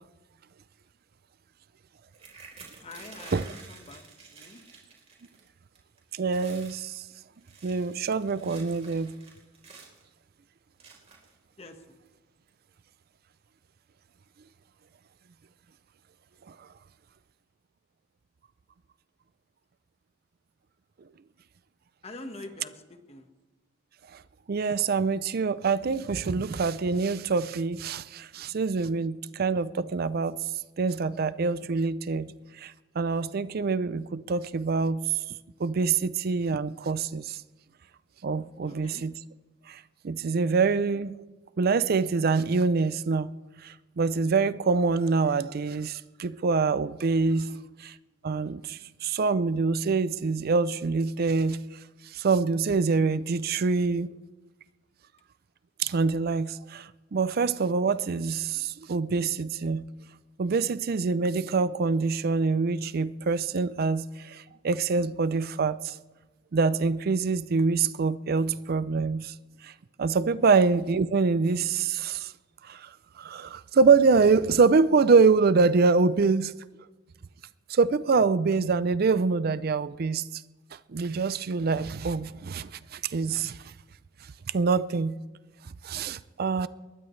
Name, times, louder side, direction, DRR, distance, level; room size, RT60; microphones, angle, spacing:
sound 1, 2.1-5.5 5.8-6.0 6.3-6.8 7.3-10.0 10.8-11.3 12.1-12.2 12.5-12.7, right 5 dB, 35° right, 3.8 m, -49 dB
voice 1, 2.8-4.0 4.3-4.6 11.6-12.0 22.0-23.3 38.6-39.0 47.4-47.6 70.5-70.6, left 2 dB, 30° left, 1.4 m, -45 dB
voice 2, 6.1-7.0 7.6-9.1 24.5-30.4 30.8-32.3 32.6-35.0 35.6-37.4 38.2-39.1 39.7-39.8 40.0-41.1 41.6-43.3 43.6-47.5 47.8-47.9 48.2-51.6 52.1-54.1 55.8-59.8 60.4-66.0 66.5-69.3 69.6-69.7 70.0-72.3 72.7-72.9 73.2-76.5 77.7-80.4 80.9-83.6 84.5-85.1 85.8-86.7, right 4 dB, 50° right, 0.4 m, -25 dB
22.0 x 19.5 x 3.2 m
head